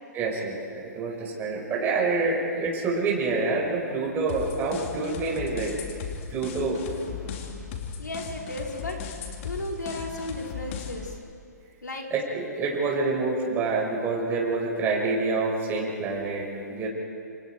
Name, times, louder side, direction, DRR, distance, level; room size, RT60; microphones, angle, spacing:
voice 1, 0.1-5.7 6.3-6.8 7.1-7.4 12.1-16.9, right 3 dB, 20° right, -3 dB, 5.6 m, -27 dB
sound 1, 4.3-11.1, left 7 dB, 45° left, 3.2 m, -37 dB
voice 2, 8.0-9.0 9.4-11.2 11.8-12.1, left 1 dB, 90° left, -1 dB, 5.2 m, -34 dB
28.0 x 28.0 x 4.7 m, 2.5 s
hypercardioid pair, 130°, 10 cm